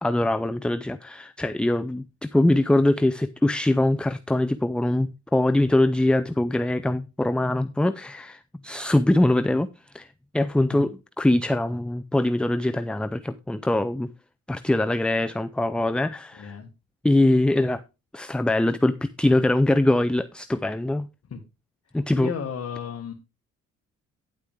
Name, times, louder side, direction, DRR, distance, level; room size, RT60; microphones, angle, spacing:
voice 1, 0.0-10.1 10.3-14.1 14.5-16.5 17.0-17.8 18.1-21.1 21.9-22.3, left 1 dB, 5° left, 0.4 m, -23 dB
voice 2, 16.3-16.7 21.3-21.4 22.1-23.1, left 6 dB, 55° left, 1.7 m, -33 dB
10.0 x 8.2 x 3.4 m
cardioid pair, 90°, 30 cm